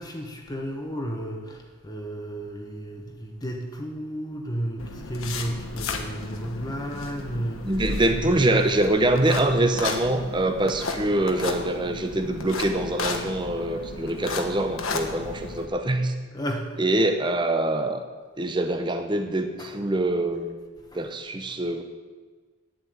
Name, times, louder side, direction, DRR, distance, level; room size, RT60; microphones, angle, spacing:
voice 1, 0.0-7.9 8.1-8.7 16.3-17.0 19.6-19.8 20.9-21.0, right 1 dB, 20° left, 2 dB, 1.2 m, -33 dB
sound 1, 4.8-15.7, left 3 dB, 80° left, 1.3 m, -34 dB
voice 2, 7.6-16.1 16.8-18.0 18.4-20.6 20.9-21.8, right 1 dB, 20° right, 6 dB, 0.8 m, -24 dB
10.5 x 7.8 x 8.1 m, 1.4 s
head